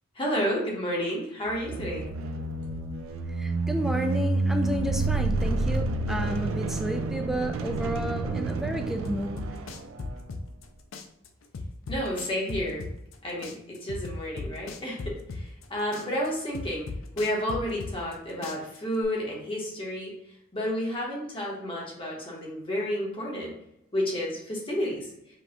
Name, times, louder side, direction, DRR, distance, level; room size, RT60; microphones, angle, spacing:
voice 1, 0.1-2.0 11.9-12.8 13.2-16.8 17.2-20.1 20.5-23.5 23.9-25.1, equal, 25° left, -3 dB, 1.1 m, -31 dB
sound 1, 1.5-10.3, right 3 dB, 80° right, 0.4 m, -29 dB
voice 2, 3.4-9.4, equal, ahead, 3 dB, 0.4 m, -31 dB
sound 2, 9.0-10.7 10.9-13.2 13.4-15.7 15.9-18.2 18.4-19.0, left 3 dB, 80° left, 0.5 m, -36 dB
5.2 x 2.3 x 2.9 m, 0.81 s
head